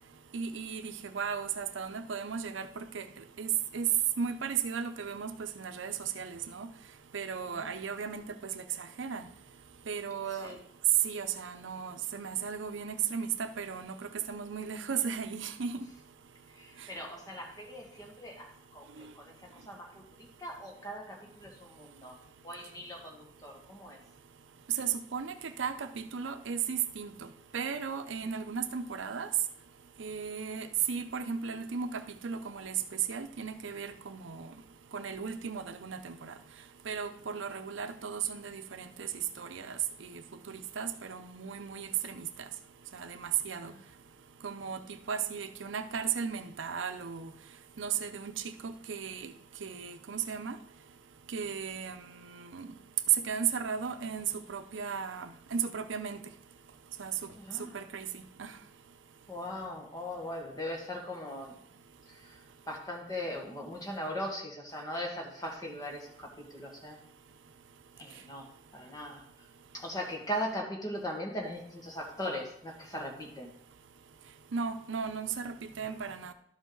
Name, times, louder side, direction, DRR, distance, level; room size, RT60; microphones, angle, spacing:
voice 1, 0.3-3.0 3.4-3.9 4.2-6.7 7.1-8.6 9.0-9.3 9.9-10.5 11.0-13.9 14.3-15.8 19.0-19.1 24.8-27.1 27.5-29.3 30.0-32.7 33.1-34.5 34.9-36.3 36.9-39.1 39.4-40.2 40.5-42.3 42.9-43.7 44.4-44.8 45.1-47.3 47.8-49.3 49.6-50.6 51.3-52.7 53.2-56.2 57.0-57.1 57.7-58.5 74.5-76.3, right 7 dB, 85° right, 9 dB, 0.6 m, -36 dB
voice 2, 16.6-22.2 22.4-24.0 43.6-43.7 57.5-57.7 59.3-61.5 62.1-62.4 62.7-67.0 68.0-69.2 69.7-73.5, equal, 20° left, 0 dB, 1.7 m, -39 dB
12.0 x 5.1 x 3.9 m, 0.70 s
head